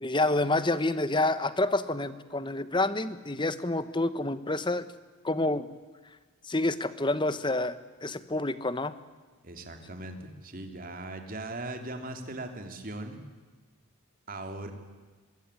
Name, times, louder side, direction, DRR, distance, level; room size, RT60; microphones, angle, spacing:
voice 1, 0.0-4.9 5.2-5.7 6.4-8.9, left 2 dB, 20° left, 14 dB, 1.1 m, -28 dB
voice 2, 9.4-13.2 14.3-14.7, right 2 dB, 40° right, 5 dB, 3.0 m, -39 dB
24.0 x 21.5 x 9.9 m, 1.4 s
head